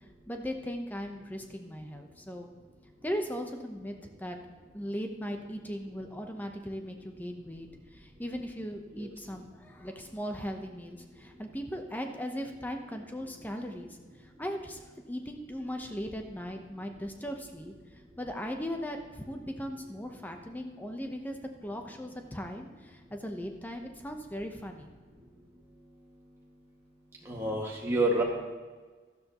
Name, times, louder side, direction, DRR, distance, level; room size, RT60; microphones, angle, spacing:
voice 1, 0.3-2.5 3.0-4.4 4.7-14.0 14.4-14.8 15.1-17.7 18.2-21.4 21.6-24.9, equal, 10° left, 4 dB, 0.8 m, -38 dB
voice 2, 27.3-28.2, right 2 dB, 15° right, -4 dB, 1.9 m, -28 dB
13.0 x 12.0 x 3.0 m, 1.4 s
head